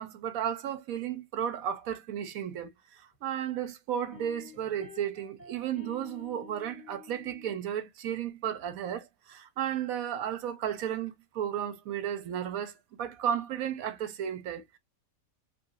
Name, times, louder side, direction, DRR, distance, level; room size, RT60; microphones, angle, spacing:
voice 1, 0.0-12.7 13.0-14.8, right 9 dB, 75° right, 1.1 m, -34 dB
sound 1, 3.1-3.2 4.1-7.6, left 7 dB, 30° left, 1.7 m, -50 dB
3.1 x 2.7 x 2.4 m
omnidirectional pair, 1.6 m